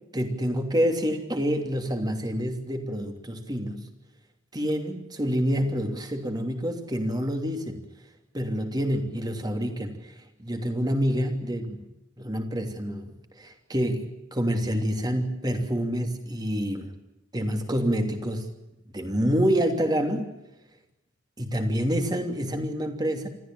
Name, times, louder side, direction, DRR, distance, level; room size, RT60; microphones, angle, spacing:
voice 1, 0.1-3.8 4.5-7.8 8.3-10.1 10.4-11.9 12.2-16.9 17.3-18.5 18.9-20.3 21.4-23.3, equal, 20° right, 4 dB, 3.0 m, -27 dB
26.5 x 14.5 x 9.2 m, 0.93 s
head